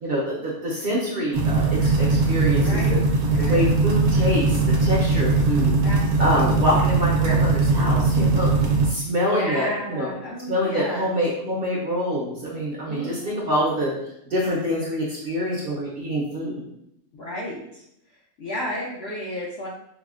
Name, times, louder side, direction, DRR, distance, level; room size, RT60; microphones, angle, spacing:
voice 1, 0.0-3.0 3.4-5.7 6.2-8.5 8.8-10.1 10.5-13.9 14.3-16.6, equal, 55° right, -5 dB, 0.7 m, -25 dB
sound 1, 1.3-8.9, right 3 dB, 80° right, 1.1 m, -20 dB
voice 2, 2.6-3.0 3.3-3.7 5.8-6.8 9.3-11.1 12.8-13.9 17.1-17.8 18.4-19.7, equal, 65° left, -4 dB, 0.6 m, -33 dB
4.8 x 2.1 x 2.4 m, 0.77 s
omnidirectional pair, 1.6 m